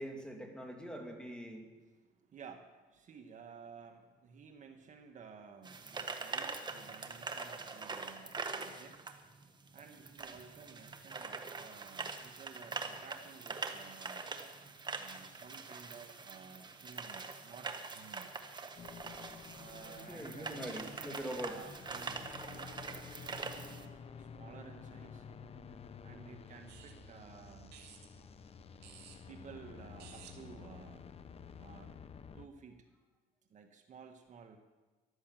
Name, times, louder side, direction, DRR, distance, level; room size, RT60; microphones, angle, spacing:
voice 1, 0.0-1.7 19.8-21.5, equal, 5° left, 2 dB, 2.7 m, -43 dB
voice 2, 1.8-9.2 9.4-14.3 15.0-18.3 19.6-25.3 26.0-27.7 29.3-31.1 31.6-32.0 32.3-32.9 33.5-34.6, right 6 dB, 45° right, 5 dB, 1.5 m, -54 dB
sound 1, 5.6-23.8, right 4 dB, 25° right, 1.4 m, -44 dB
sound 2, 18.8-32.5, left 6 dB, 35° left, 0.8 m, -51 dB
sound 3, 26.7-31.5, right 8 dB, 80° right, 2.6 m, -58 dB
14.5 x 12.0 x 7.6 m, 1.2 s
cardioid pair, 110°, 17 cm